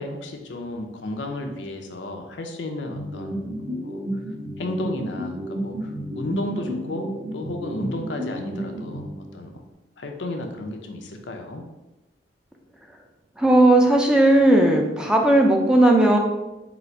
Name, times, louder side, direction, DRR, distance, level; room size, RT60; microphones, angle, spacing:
voice 1, 0.0-4.0 4.6-9.1 9.3-9.6 10.0-11.6, left 1 dB, 85° left, 4 dB, 0.6 m, -33 dB
sound 1, 2.9-9.6, equal, 65° right, 1.1 m, -32 dB
voice 2, 13.4-16.2, right 1 dB, 5° right, 1 dB, 0.4 m, -16 dB
3.9 x 2.5 x 4.4 m, 1.1 s
head